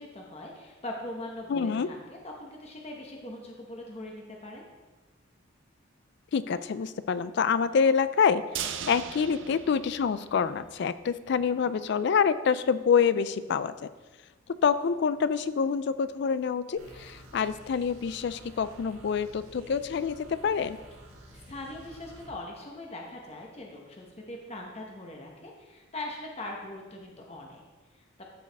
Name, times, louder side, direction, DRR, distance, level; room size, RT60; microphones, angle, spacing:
voice 1, 0.0-4.6 21.3-27.6 27.9-28.0, left 1 dB, 30° left, 0 dB, 0.9 m, -41 dB
voice 2, 1.5-1.9 6.3-13.9 14.6-20.8, left 6 dB, 55° left, 14 dB, 0.3 m, -26 dB
sound 1, 8.5-10.7 11.0-11.1 11.5-11.6, right 8 dB, 65° right, 0.5 m, -38 dB
sound 2, 16.8-22.3, right 1 dB, 85° right, 2.0 m, -51 dB
13.0 x 4.7 x 3.4 m, 1.2 s
head